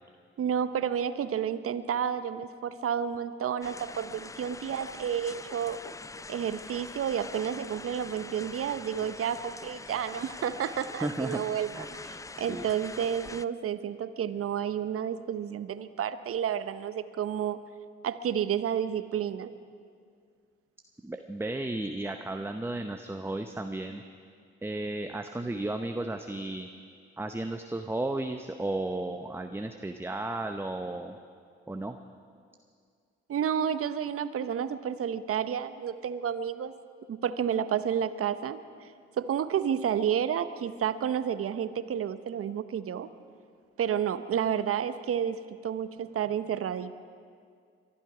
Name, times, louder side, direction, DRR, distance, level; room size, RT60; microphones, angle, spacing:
voice 1, 0.4-5.8 6.3-17.6 18.0-19.5 33.3-36.7 37.1-38.9 39.2-43.1 43.8-46.9, right 8 dB, 50° right, 13 dB, 0.9 m, -31 dB
sound 1, 3.6-13.4, left 3 dB, 10° left, 0.4 m, -44 dB
voice 2, 11.0-11.4 11.7-11.9 12.5-12.6 21.0-24.0 24.6-26.7 27.2-31.2 31.7-32.0, right 2 dB, 10° right, 6 dB, 0.8 m, -34 dB
23.5 x 11.5 x 5.0 m, 2.2 s
hypercardioid pair, 45°, 29 cm